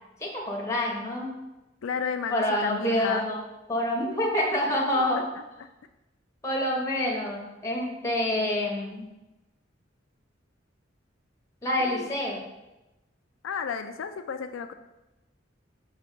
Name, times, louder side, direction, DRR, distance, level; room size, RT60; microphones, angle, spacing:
voice 1, 0.2-1.3 2.3-3.4 3.7-5.2 6.4-9.0 11.6-12.4, left 1 dB, 15° left, -2 dB, 1.3 m, -27 dB
voice 2, 1.8-3.2 4.9-5.7 11.8-12.1 13.4-14.7, left 6 dB, 85° left, 8 dB, 0.4 m, -33 dB
5.6 x 3.5 x 5.3 m, 1.0 s
head